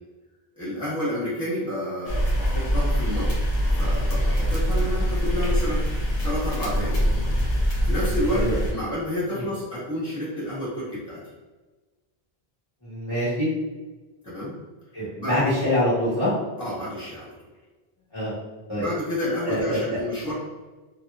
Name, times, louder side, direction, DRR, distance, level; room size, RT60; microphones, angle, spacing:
voice 1, 0.6-3.3 3.8-7.0 7.8-11.2 14.2-14.6 15.2-15.4 16.6-17.3 18.7-20.3, left 1 dB, 5° right, -12 dB, 1.0 m, -30 dB
sound 1, 2.0-8.7, equal, 65° left, 1.0 m, -24 dB
voice 2, 12.8-13.5 14.9-16.3 18.1-18.3 18.7-18.8 19.4-19.8, left 1 dB, 30° left, -11 dB, 1.1 m, -24 dB
2.8 x 2.2 x 2.3 m, 1.2 s
omnidirectional pair, 1.0 m